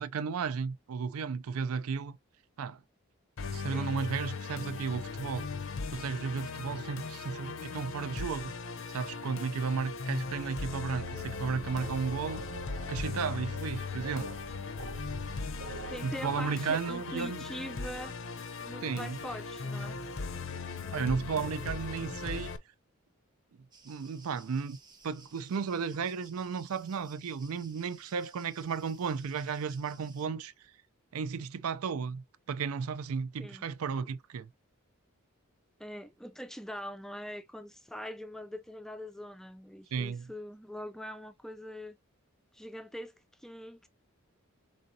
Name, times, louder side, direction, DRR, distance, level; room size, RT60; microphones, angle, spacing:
voice 1, 0.0-2.2 2.6-2.8 3.5-5.5 5.9-8.5 8.9-12.4 12.9-14.3 16.0-17.4 18.8-19.2 20.9-22.5 23.8-24.8 25.0-30.5 31.1-34.5 39.9-40.3, right 5 dB, 80° right, 0.4 m, -34 dB
Musical instrument, 3.4-22.6, left 4 dB, 60° left, 0.6 m, -39 dB
sound 1, 11.0-16.0, right 2 dB, 60° right, 0.8 m, -44 dB
voice 2, 15.9-18.1 18.6-20.0 33.4-33.7 35.8-42.0 42.5-43.9, equal, ahead, 0.3 m, -43 dB
sound 2, 23.7-30.3, right 4 dB, 20° right, 0.7 m, -57 dB
4.9 x 3.7 x 2.6 m
head